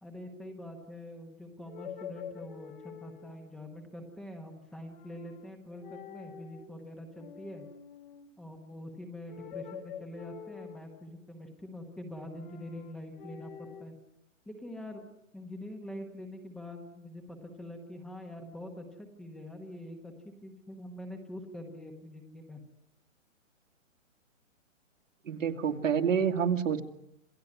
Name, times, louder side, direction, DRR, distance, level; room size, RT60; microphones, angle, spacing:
voice 1, 0.0-7.7 8.4-13.9 14.5-15.1 15.3-22.6, left 1 dB, ahead, 4 dB, 1.0 m, -44 dB
sound 1, 1.6-3.5 4.8-5.5 5.8-6.7 7.1-8.3 9.3-11.1 12.2-13.9, left 9 dB, 40° left, 2.3 m, -47 dB
voice 2, 25.3-26.8, right 7 dB, 75° right, 7 dB, 2.6 m, -28 dB
27.5 x 17.0 x 9.6 m, 0.78 s
hypercardioid pair, 165°, 39 cm